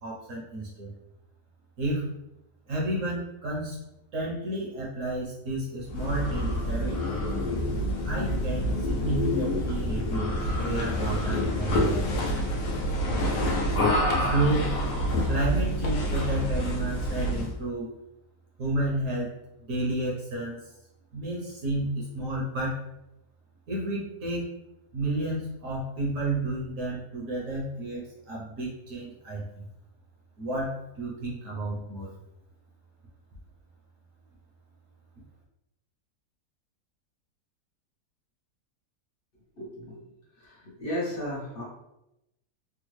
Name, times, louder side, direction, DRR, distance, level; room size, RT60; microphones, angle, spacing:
voice 1, 0.0-0.9 1.8-2.1 2.7-3.8 4.1-7.0 8.0-12.4 14.1-14.7 15.3-17.9 18.6-19.3 19.6-20.7 21.1-22.8 23.7-24.5 24.9-29.7 30.4-32.1, right 1 dB, 60° right, -4 dB, 1.0 m, -31 dB
sound 1, 5.8-17.6, equal, 90° left, 1.2 m, -27 dB
voice 2, 39.6-40.1 40.4-41.6, left 1 dB, 45° left, -8 dB, 0.9 m, -34 dB
3.6 x 2.2 x 3.0 m, 0.87 s
omnidirectional pair, 1.7 m